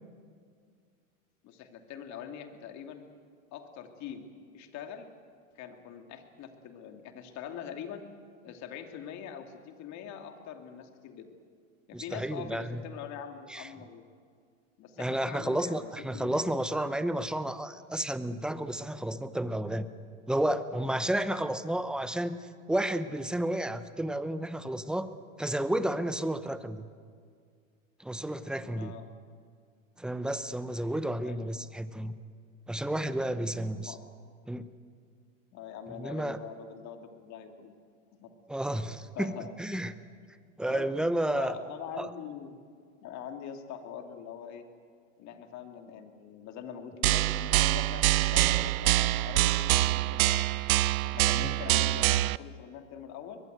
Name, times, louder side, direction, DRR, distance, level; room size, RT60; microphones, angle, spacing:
voice 1, 1.4-3.0 3.5-4.2 4.5-5.1 5.5-8.0 8.4-11.3 11.9-14.0 14.8-16.4 28.7-29.1 31.2-31.6 33.8-34.0 35.5-37.7 38.2-38.3 39.1-39.5 40.7-40.9 41.3-42.6 43.0-44.6 45.2-50.5 51.0-53.4, left 8 dB, 40° left, 6 dB, 2.7 m, -43 dB
voice 2, 11.9-12.8 13.5-13.7 15.0-19.9 20.3-22.4 22.7-25.1 25.4-26.9 28.0-29.0 30.0-32.2 32.7-33.9 34.5-34.7 36.0-36.4 38.5-39.3 39.6-39.9 40.6-41.6 42.0-42.1 51.4-51.5, right 1 dB, ahead, 12 dB, 0.8 m, -31 dB
sound 1, 47.0-52.4, right 16 dB, 80° right, 0.6 m, -25 dB
22.5 x 21.5 x 8.0 m, 2.1 s
hypercardioid pair, 120°, 41 cm